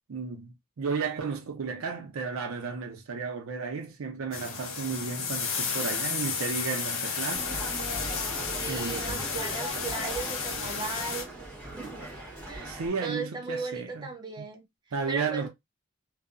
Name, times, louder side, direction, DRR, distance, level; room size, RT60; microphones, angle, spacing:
voice 1, 0.1-7.6 8.7-9.3 12.6-14.1 14.4-14.5 14.9-15.5, right 5 dB, 90° right, 0.5 m, -33 dB
sound 1, 4.3-11.2, left 5 dB, 75° left, 0.6 m, -32 dB
sound 2, 7.3-12.9, right 1 dB, 5° left, 1.1 m, -39 dB
voice 2, 8.5-11.3 11.8-12.0 12.5-14.6 15.1-15.5, right 4 dB, 20° right, 0.5 m, -37 dB
2.6 x 2.0 x 2.4 m
head